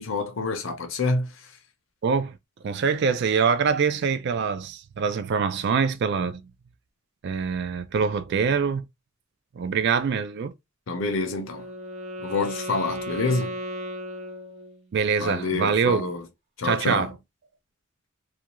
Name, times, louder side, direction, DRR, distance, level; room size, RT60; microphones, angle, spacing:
voice 1, 0.0-1.3 10.9-11.7 12.2-13.6 15.2-16.2 16.6-17.1, left 3 dB, 65° left, 0.6 m, -27 dB
voice 2, 2.0-2.4 2.6-6.4 7.2-8.9 9.5-10.5 14.9-16.1 16.6-17.1, right 6 dB, 55° right, 0.3 m, -24 dB
Wind instrument woodwind instrument, 11.1-15.0, equal, 35° right, 0.8 m, -36 dB
2.4 x 2.2 x 2.9 m
head